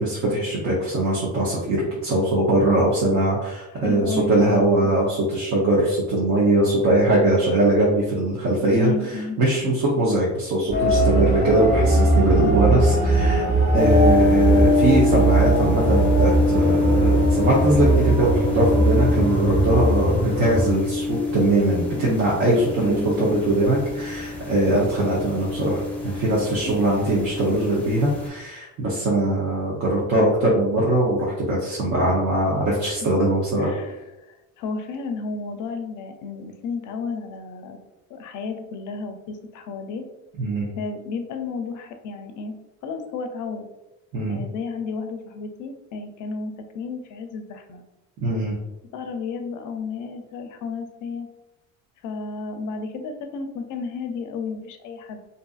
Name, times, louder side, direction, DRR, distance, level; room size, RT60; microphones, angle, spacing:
voice 1, 0.0-13.4 13.7-33.7 40.4-40.7 44.1-44.4 48.2-48.6, right 1 dB, 55° right, -4 dB, 0.7 m, -21 dB
voice 2, 3.7-4.9 8.6-9.4 12.4-12.8 22.0-22.2 22.8-23.4 33.6-34.0 34.3-37.8 38.1-40.0 40.8-42.5 42.8-43.7 44.3-47.8 48.9-51.3 52.0-55.2, left 4 dB, 60° left, 6 dB, 0.5 m, -32 dB
sound 1, 10.7-20.7, right 2 dB, 35° right, 1.1 m, -20 dB
sound 2, 13.8-28.3, left 3 dB, 5° left, 0.7 m, -25 dB
2.6 x 2.5 x 2.3 m, 1.0 s
cardioid pair, 110°, 34 cm